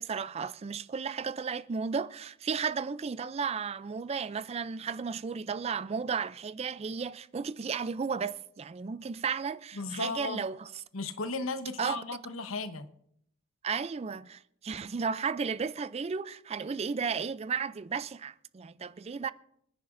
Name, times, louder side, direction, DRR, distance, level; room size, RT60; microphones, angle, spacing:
voice 1, 0.0-10.7 11.8-12.0 13.6-19.3, right 5 dB, 30° right, 0.4 m, -34 dB
voice 2, 9.7-10.4 10.9-12.9, left 3 dB, 80° left, 1.0 m, -35 dB
26.5 x 10.0 x 2.6 m
head